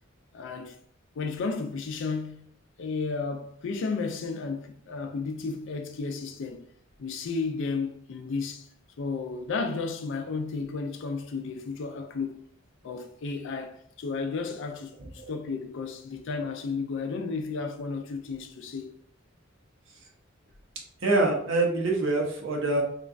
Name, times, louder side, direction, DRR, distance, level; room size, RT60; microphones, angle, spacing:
voice 1, 0.3-0.8 1.2-2.4 2.8-6.6 7.0-8.7 9.0-12.3 12.8-18.9, left 4 dB, 65° left, 0.4 m, -33 dB
voice 2, 21.0-22.8, right 2 dB, 70° right, 0.7 m, -25 dB
3.0 x 2.3 x 2.4 m
head